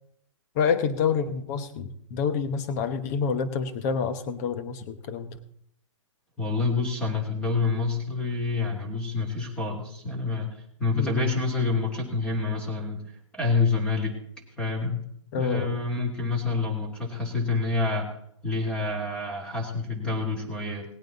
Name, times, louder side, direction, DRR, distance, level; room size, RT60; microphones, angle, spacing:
voice 1, 0.6-5.4 10.9-11.3 15.3-15.8, left 6 dB, 30° left, 11 dB, 1.1 m, -28 dB
voice 2, 6.4-13.0 13.3-14.1 14.6-15.0 15.3-18.1 18.4-20.9, left 3 dB, 5° left, 1 dB, 2.9 m, -27 dB
19.0 x 8.9 x 4.1 m, 0.67 s
hypercardioid pair, 155°, 16 cm